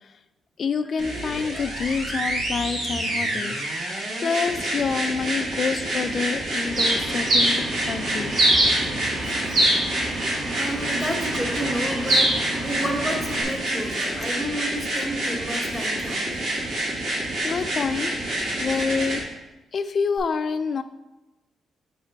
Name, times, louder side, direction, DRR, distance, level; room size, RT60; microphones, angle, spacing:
voice 1, 0.6-3.6 4.2-8.4 17.4-18.1 18.6-19.2 19.7-20.8, left 5 dB, 40° left, 10 dB, 0.3 m, -27 dB
sound 1, 1.0-19.2 20.2-20.3, right 1 dB, 85° right, 2.2 m, -28 dB
Bird, 6.7-13.4, right 1 dB, 60° right, 1.7 m, -24 dB
voice 2, 10.5-12.4 12.6-16.4, equal, 5° right, 0 dB, 1.0 m, -31 dB
6.1 x 5.1 x 4.0 m, 1.0 s
cardioid pair, 145°, 0 cm